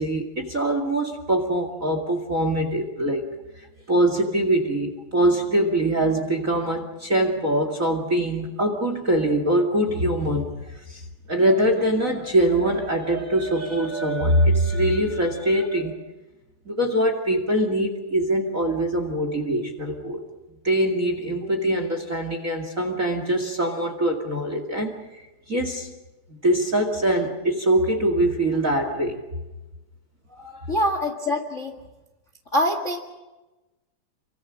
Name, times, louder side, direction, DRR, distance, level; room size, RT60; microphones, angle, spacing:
voice 1, 0.0-3.3 3.9-10.5 10.9-11.0 11.3-16.0 16.7-20.2 20.6-25.0 25.5-25.9 26.3-29.2 30.4-30.7, right 1 dB, 30° right, 5 dB, 1.9 m, -23 dB
voice 2, 30.7-31.7 32.5-33.0, left 1 dB, 30° left, 5 dB, 1.4 m, -24 dB
28.0 x 24.0 x 6.3 m, 1.1 s
omnidirectional pair, 4.1 m